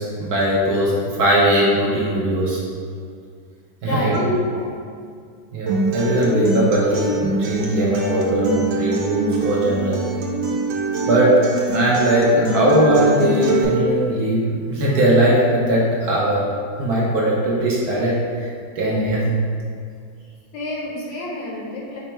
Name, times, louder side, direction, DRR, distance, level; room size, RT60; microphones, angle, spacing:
voice 1, 0.0-2.6 3.8-4.6 5.5-10.0 11.1-16.5 16.8-18.5 18.8-19.4, right 1 dB, 65° right, -5 dB, 1.1 m, -19 dB
voice 2, 3.8-5.0 20.5-22.0, left 1 dB, 75° left, -3 dB, 1.4 m, -30 dB
Acoustic guitar, 5.7-13.6, right 2 dB, 90° right, 1.4 m, -24 dB
5.2 x 2.0 x 4.4 m, 2.1 s
omnidirectional pair, 2.0 m